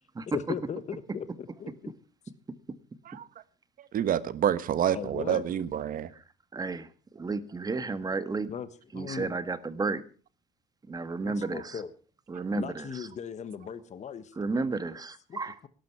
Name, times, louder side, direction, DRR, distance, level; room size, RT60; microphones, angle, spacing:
voice 1, 0.3-1.9 4.9-5.4 8.5-8.7 8.9-9.4 11.2-11.9 12.5-14.3 15.3-15.7, left 7 dB, 45° left, 1.4 m, -38 dB
voice 2, 3.8-6.1, right 10 dB, 55° right, 1.4 m, -28 dB
voice 3, 6.5-8.5 8.9-10.0 10.9-11.8 12.3-13.1 14.4-15.7, right 3 dB, 20° right, 1.6 m, -32 dB
18.0 x 12.5 x 4.6 m
cardioid pair, 110°, 17 cm